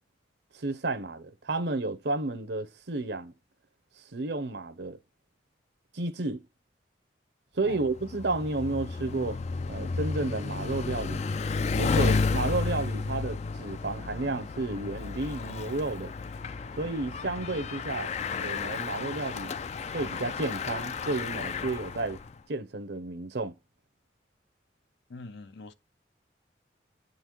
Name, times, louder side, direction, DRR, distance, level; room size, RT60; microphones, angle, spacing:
voice 1, 0.5-3.3 4.1-5.0 5.9-6.4 7.6-9.4 9.7-11.2 11.7-16.1 16.8-18.1 18.4-19.6 19.9-22.2 22.5-23.5, right 2 dB, 65° right, 0.7 m, -32 dB
Bicycle, 7.7-22.3, left 4 dB, 35° left, 0.3 m, -32 dB
voice 2, 25.1-25.7, left 3 dB, 70° left, 0.7 m, -43 dB
8.9 x 3.9 x 3.0 m
head